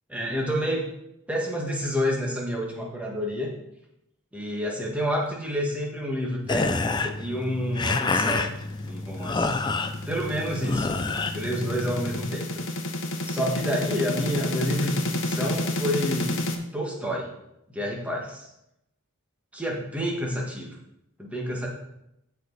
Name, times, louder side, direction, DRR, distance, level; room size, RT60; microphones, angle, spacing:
voice 1, 0.1-0.9 1.3-3.5 4.3-8.5 8.8-9.6 10.1-10.9 11.3-12.6 13.3-16.5 16.7-17.3 17.7-18.5 19.5-20.8 21.2-21.7, equal, 5° right, -1 dB, 1.5 m, -29 dB
sound 1, 6.5-12.3, left 3 dB, 20° left, 0.4 m, -28 dB
sound 2, 8.4-16.5, left 1 dB, 55° left, 1.1 m, -30 dB
14.0 x 4.7 x 4.1 m, 0.83 s
head